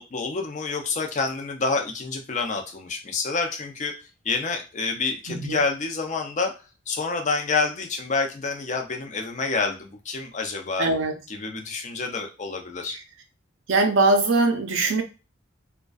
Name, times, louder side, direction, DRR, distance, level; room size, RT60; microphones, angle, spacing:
voice 1, 0.0-3.9 4.2-6.5 6.9-10.9 11.3-13.0, left 4 dB, 35° left, 3 dB, 0.5 m, -28 dB
voice 2, 5.3-5.6 10.8-11.2 12.9-13.0 13.7-15.0, right 2 dB, 65° right, 4 dB, 0.5 m, -21 dB
2.4 x 2.2 x 2.3 m, 0.31 s
head